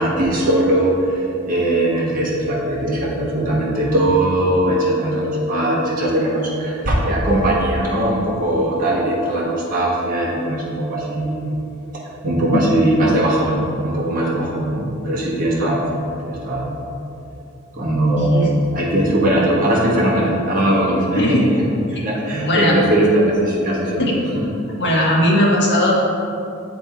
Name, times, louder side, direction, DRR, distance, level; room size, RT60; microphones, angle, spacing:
voice 1, 0.0-11.5 12.2-16.7 17.7-21.4 21.9-24.1, right 1 dB, 40° right, -6 dB, 1.4 m, -19 dB
voice 2, 18.2-18.5 21.2-21.4 21.9-22.0 22.4-22.8 24.0-24.1 24.8-25.9, left 1 dB, 55° left, -4 dB, 1.3 m, -17 dB
8.0 x 3.5 x 4.4 m, 2.7 s
head